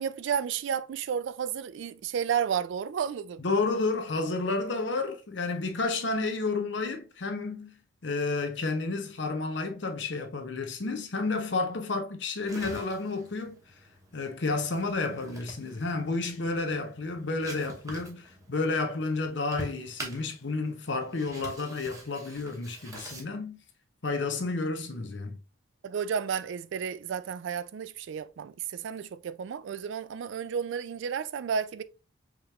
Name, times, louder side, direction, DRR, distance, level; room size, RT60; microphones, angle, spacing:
voice 1, 0.0-3.4 15.1-15.2 25.8-31.8, right 7 dB, 70° right, 0.3 m, -32 dB
voice 2, 3.4-13.6 14.1-23.6 24.0-25.4, left 3 dB, 65° left, 0.8 m, -31 dB
sound 1, 12.5-23.2, right 1 dB, 15° right, 0.9 m, -46 dB
4.9 x 3.0 x 2.3 m
head